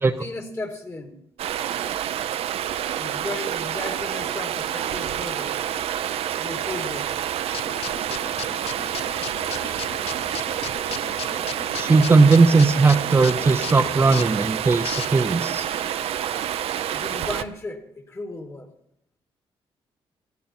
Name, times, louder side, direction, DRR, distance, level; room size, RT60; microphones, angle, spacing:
voice 1, 0.0-1.2 3.0-5.6 6.4-7.2 16.9-18.7, left 2 dB, 25° left, 2.0 m, -35 dB
Stream, 1.4-17.4, right 10 dB, 80° right, 0.7 m, -28 dB
sound 1, 7.5-15.4, left 10 dB, 80° left, 0.6 m, -37 dB
voice 2, 11.7-15.7, right 4 dB, 20° right, 0.6 m, -18 dB
19.0 x 13.0 x 4.4 m
cardioid pair, 135°, 10 cm